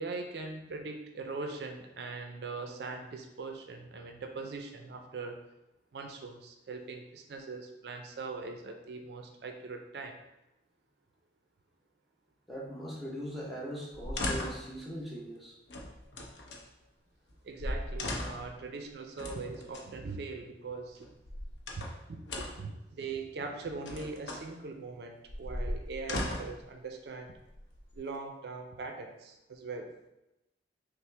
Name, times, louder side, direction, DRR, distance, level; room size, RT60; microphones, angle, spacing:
voice 1, 0.0-5.4 5.9-10.2 17.4-21.1 21.8-27.3 28.0-29.9, right 3 dB, 65° right, 4 dB, 0.4 m, -41 dB
voice 2, 12.5-15.5, equal, ahead, -5 dB, 0.6 m, -40 dB
sound 1, 13.9-14.7 15.7-16.6 17.3-17.4 17.6-18.5 19.2-19.9 21.0-22.0 22.3-22.7 23.6-24.5 25.3-26.6 27.5-28.2, left 1 dB, 75° left, 0.6 m, -37 dB
5.6 x 2.0 x 3.2 m, 0.95 s
head